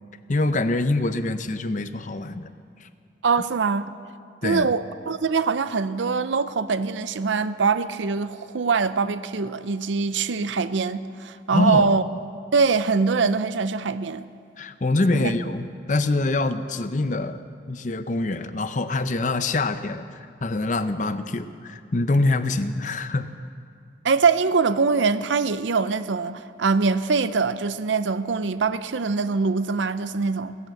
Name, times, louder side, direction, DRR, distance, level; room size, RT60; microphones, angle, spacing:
voice 1, 0.3-2.5 2.8-2.9 4.4-4.7 11.5-11.9 14.6-17.4 17.7-23.3, left 2 dB, 40° left, 0.6 m, -25 dB
voice 2, 3.2-3.8 4.4-12.0 12.5-14.3 15.2-15.3 24.0-30.6, right 4 dB, 80° right, 0.6 m, -23 dB
16.5 x 11.0 x 7.7 m
head